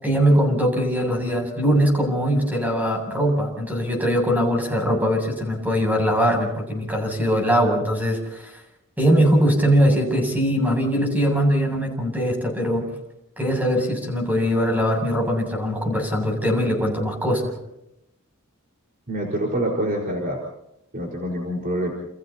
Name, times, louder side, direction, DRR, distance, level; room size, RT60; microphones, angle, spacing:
voice 1, 0.0-8.5 9.0-12.9 13.4-17.5, equal, 10° right, 2 dB, 7.4 m, -21 dB
voice 2, 19.1-20.4 20.9-21.9, right 1 dB, 40° right, -1 dB, 4.8 m, -26 dB
30.0 x 29.5 x 2.9 m, 0.82 s
head